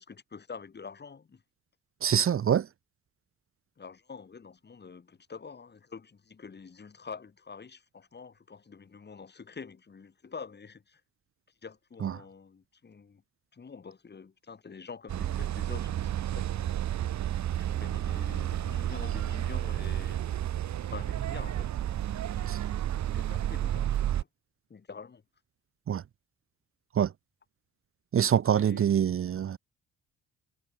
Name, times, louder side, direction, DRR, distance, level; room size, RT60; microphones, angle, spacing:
voice 1, 0.0-1.4 3.8-11.0 11.6-13.2 13.5-16.7 17.6-20.2 20.8-24.3 24.7-25.2 28.5-28.9, left 5 dB, 35° left, 3.5 m, -47 dB
voice 2, 2.0-2.7 12.0-12.1 22.5-22.6 25.9-26.0 27.0-27.1 28.1-29.6, right 9 dB, 45° right, 0.9 m, -25 dB
sound 1, 15.1-24.2, right 11 dB, 70° right, 2.1 m, -31 dB
cardioid pair, 90°, 30 cm